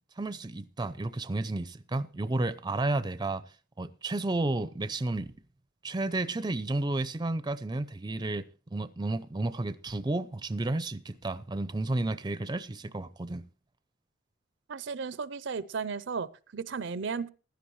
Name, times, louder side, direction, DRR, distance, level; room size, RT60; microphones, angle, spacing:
voice 1, 0.2-3.5 3.8-5.3 5.8-8.5 8.7-13.5, right 2 dB, 20° right, 0.5 m, -32 dB
voice 2, 14.7-17.3, right 5 dB, 65° right, 0.5 m, -35 dB
15.5 x 12.0 x 3.2 m
head